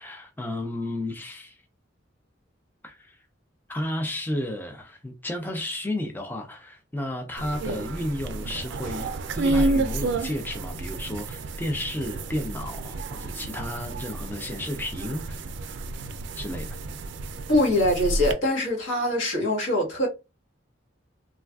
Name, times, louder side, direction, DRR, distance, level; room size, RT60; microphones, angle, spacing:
voice 1, 0.0-1.6 2.8-3.2 3.7-9.1 9.4-15.5 16.3-16.8, left 1 dB, 10° left, 0.4 m, -32 dB
sound 1, 7.4-18.3, right 2 dB, 65° right, 0.4 m, -30 dB
voice 2, 17.5-20.1, left 1 dB, 75° left, 1.2 m, -23 dB
3.2 x 2.3 x 2.3 m
head